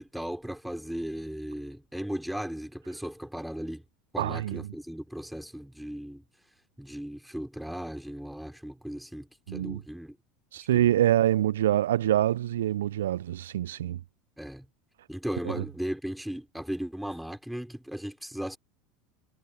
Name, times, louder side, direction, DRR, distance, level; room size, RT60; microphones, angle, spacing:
voice 1, 0.0-3.8 4.1-6.2 6.8-10.2 10.7-10.9 14.4-14.7 15.1-18.6, equal, ahead, 4.6 m, -36 dB
voice 2, 4.2-4.6 9.5-9.8 10.5-14.0, right 12 dB, 75° right, 0.4 m, -25 dB
figure-of-eight pair, 75°, 0 cm